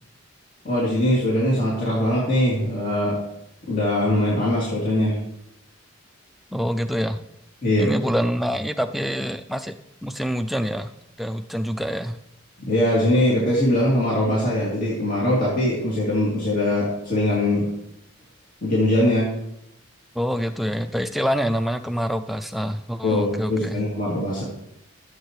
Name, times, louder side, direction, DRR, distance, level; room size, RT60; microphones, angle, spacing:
voice 1, 0.6-3.2 3.7-5.2 7.6-7.9 12.6-17.7 18.6-19.3 23.0-24.4, left 1 dB, 40° left, -7 dB, 2.6 m, -21 dB
voice 2, 6.5-7.2 7.8-9.8 10.0-10.9 11.2-12.2 20.2-23.8, equal, ahead, 8 dB, 0.3 m, -26 dB
15.0 x 7.4 x 3.2 m, 0.81 s
head